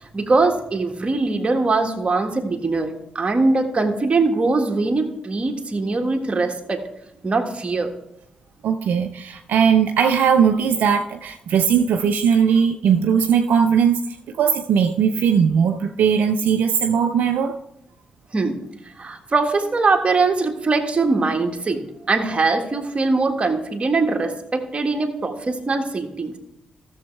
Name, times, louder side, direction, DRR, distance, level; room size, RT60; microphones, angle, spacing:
voice 1, 0.0-6.8 7.2-7.9 18.3-18.6 19.0-21.8 22.1-26.4, right 3 dB, 40° right, 3 dB, 1.6 m, -21 dB
voice 2, 8.6-17.6, right 7 dB, 75° right, 5 dB, 0.5 m, -19 dB
13.5 x 7.2 x 3.3 m, 0.86 s
supercardioid pair, 45°, 3 cm